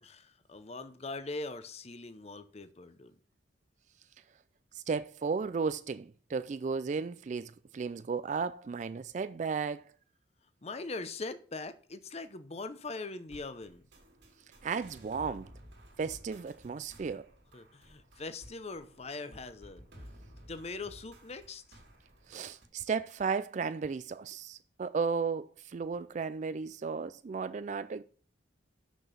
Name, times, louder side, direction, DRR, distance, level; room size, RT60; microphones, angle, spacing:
voice 1, 0.0-3.1 10.6-13.8 17.5-19.9 20.5-21.8, left 3 dB, 35° left, 0.7 m, -41 dB
voice 2, 4.7-9.9 14.6-15.5 16.0-17.3 22.3-28.0, right 5 dB, 40° right, 0.3 m, -34 dB
sound 1, 13.3-22.7, equal, 70° right, 2.4 m, -55 dB
6.3 x 6.0 x 6.8 m
head